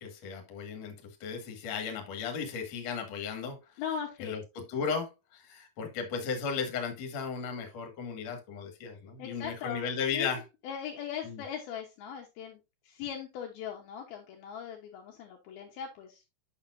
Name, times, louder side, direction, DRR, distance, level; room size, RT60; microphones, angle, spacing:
voice 1, 0.0-3.6 4.2-10.4 11.2-11.4, left 6 dB, 50° left, 2.4 m, -35 dB
voice 2, 3.8-4.4 9.2-9.8 10.1-16.4, left 8 dB, 70° left, 2.6 m, -39 dB
8.8 x 6.7 x 2.6 m
omnidirectional pair, 4.9 m